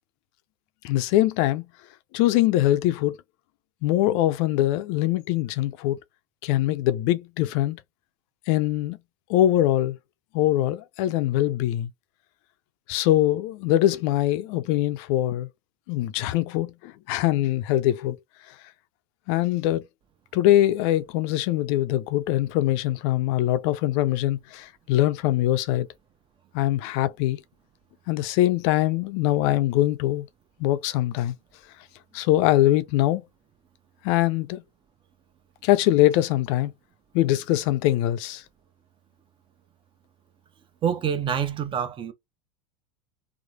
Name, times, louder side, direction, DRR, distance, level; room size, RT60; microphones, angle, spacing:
voice 1, 0.8-1.6 2.1-3.2 3.8-6.0 6.4-7.8 8.5-9.0 9.3-10.0 10.3-11.9 12.9-15.5 15.9-18.2 18.5-18.6 19.3-19.8 20.3-25.9 26.5-27.4 28.1-30.3 30.6-31.3 32.1-33.2 34.0-34.6 35.6-36.7 37.1-38.4, left 14 dB, 55° left, 0.4 m, -23 dB
voice 2, 40.8-42.1, right 8 dB, 30° right, 0.7 m, -26 dB
3.0 x 2.0 x 2.6 m
hypercardioid pair, 95°, 18 cm